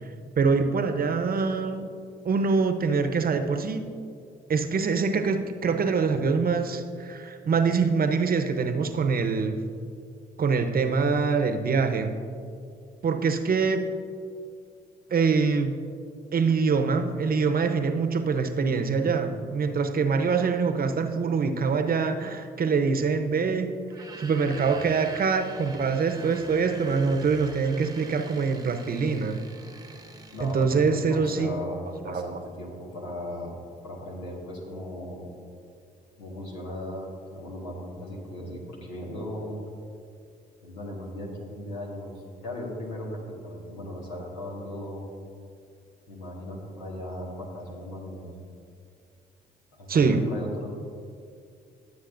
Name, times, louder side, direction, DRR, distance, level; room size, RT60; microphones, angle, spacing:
voice 1, 0.4-1.9 2.2-3.8 4.5-9.6 10.4-12.1 13.0-13.9 15.1-15.7 16.3-23.7 24.2-29.4 30.4-31.5 32.1-32.2 49.9-50.2, right 5 dB, 45° right, 7 dB, 0.9 m, -24 dB
sound 1, 23.8-31.1, right 2 dB, 20° right, 1.0 m, -45 dB
voice 2, 30.3-33.5 33.8-35.3 36.2-39.6 40.6-42.1 42.4-45.1 46.1-48.3 49.7-50.7, left 1 dB, 90° left, -2 dB, 1.6 m, -37 dB
16.5 x 7.1 x 2.6 m, 2.3 s
hypercardioid pair, 50°, 21 cm